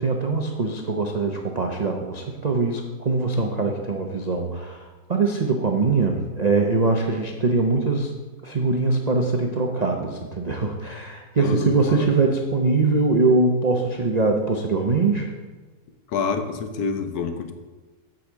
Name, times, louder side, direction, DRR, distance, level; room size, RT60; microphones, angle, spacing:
voice 1, 0.0-4.8 5.1-8.1 8.4-15.3, right 3 dB, 80° right, 2 dB, 0.3 m, -22 dB
voice 2, 11.4-12.1 16.1-17.5, left 5 dB, 65° left, 7 dB, 1.3 m, -27 dB
8.6 x 5.0 x 7.4 m, 1.3 s
omnidirectional pair, 1.9 m